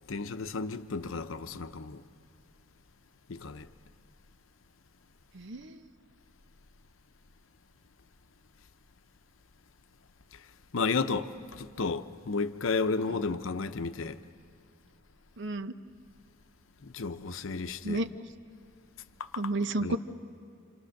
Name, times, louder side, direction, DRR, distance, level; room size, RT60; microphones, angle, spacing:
voice 1, 0.1-2.0 3.3-3.7 10.7-14.2 16.8-18.0 19.2-19.3 19.8-20.0, left 4 dB, 75° left, 0.8 m, -32 dB
voice 2, 5.3-5.9 13.1-13.2 15.4-15.7 17.8-18.1 19.4-20.0, right 2 dB, 65° right, 0.9 m, -32 dB
29.0 x 27.0 x 6.5 m
head